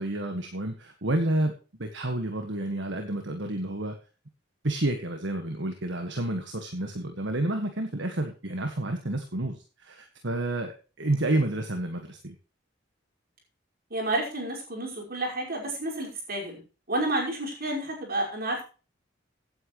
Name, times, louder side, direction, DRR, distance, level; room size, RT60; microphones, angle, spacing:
voice 1, 0.0-4.0 4.6-12.4, right 1 dB, 70° right, 5 dB, 1.7 m, -30 dB
voice 2, 13.9-16.6 16.9-18.6, right 1 dB, 50° right, 0 dB, 5.4 m, -30 dB
16.0 x 9.2 x 3.2 m, 0.34 s
head